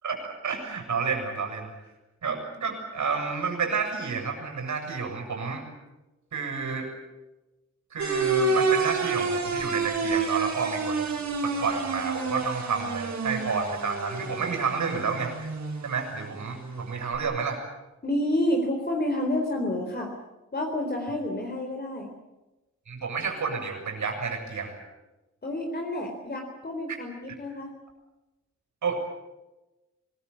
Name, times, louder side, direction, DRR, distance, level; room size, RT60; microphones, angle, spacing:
voice 1, 0.0-1.7 2.2-5.7 6.3-6.9 7.9-15.3 15.8-17.6 22.9-24.8 28.8-29.0, right 5 dB, 85° right, 3 dB, 7.4 m, -30 dB
sound 1, 8.0-17.2, right 4 dB, 70° right, 4.2 m, -29 dB
voice 2, 18.0-20.1 20.5-22.1 25.4-27.7, left 1 dB, 35° left, 1 dB, 3.9 m, -29 dB
24.5 x 21.5 x 8.4 m, 1.0 s
wide cardioid pair, 150°, 29 cm